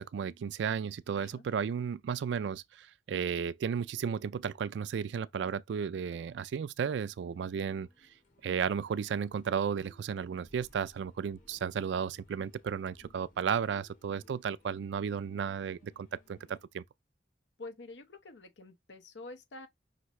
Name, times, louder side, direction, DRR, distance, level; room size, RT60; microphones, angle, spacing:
voice 1, 0.0-7.9 8.4-16.8, right 7 dB, 80° right, 0.3 m, -34 dB
sound 1, 6.7-16.7, left 1 dB, 50° left, 1.6 m, -63 dB
voice 2, 17.6-19.7, left 2 dB, 85° left, 0.9 m, -47 dB
5.8 x 2.7 x 3.1 m
head